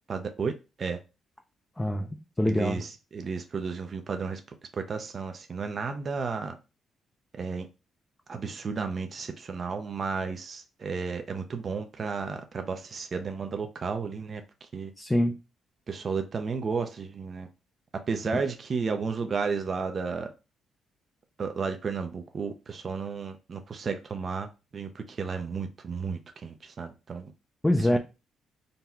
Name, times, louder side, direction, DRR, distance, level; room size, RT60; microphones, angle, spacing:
voice 1, 0.1-0.5 0.8-1.0 2.4-4.4 4.8-6.6 7.3-7.7 8.3-14.9 15.9-17.5 18.1-20.3 21.4-27.3 27.8-28.0, right 5 dB, 45° right, 0.6 m, -33 dB
voice 2, 1.8-2.8 15.0-15.4 27.6-28.0, left 1 dB, 10° left, 0.5 m, -25 dB
3.9 x 2.3 x 4.3 m
cardioid pair, 90°, 0 cm